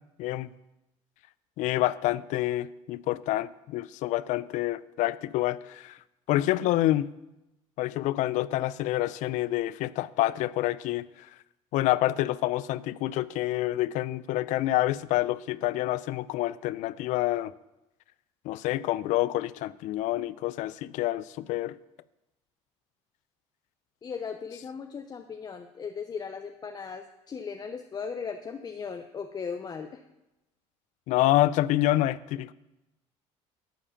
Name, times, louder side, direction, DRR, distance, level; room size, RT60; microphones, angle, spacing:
voice 1, 1.6-6.0 6.3-7.1 7.8-11.1 11.7-17.5 18.5-21.8 31.1-32.5, left 15 dB, 70° left, 0.4 m, -27 dB
voice 2, 24.0-30.0, left 6 dB, 30° left, 0.6 m, -37 dB
11.5 x 4.9 x 7.2 m
supercardioid pair, 100°, 13 cm